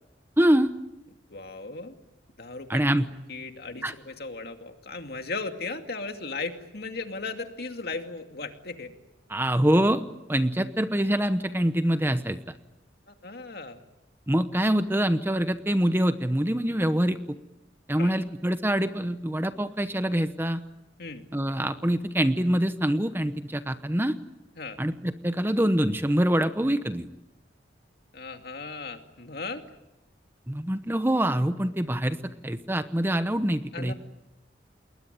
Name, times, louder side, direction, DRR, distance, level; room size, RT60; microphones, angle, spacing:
voice 1, 0.4-0.7 2.7-3.1 3.8-3.9 9.3-10.0 10.3-12.4 14.3-17.4 17.9-20.6 21.3-24.2 24.8-27.1 30.5-32.2 32.4-33.9, right 1 dB, 10° right, 10 dB, 0.9 m, -25 dB
voice 2, 1.3-2.0 2.4-2.8 3.3-8.9 13.1-13.8 17.9-18.1 21.0-21.2 24.6-24.8 28.1-29.6 33.7-33.9, left 3 dB, 60° left, 6 dB, 2.4 m, -36 dB
29.5 x 21.0 x 9.3 m, 0.94 s
head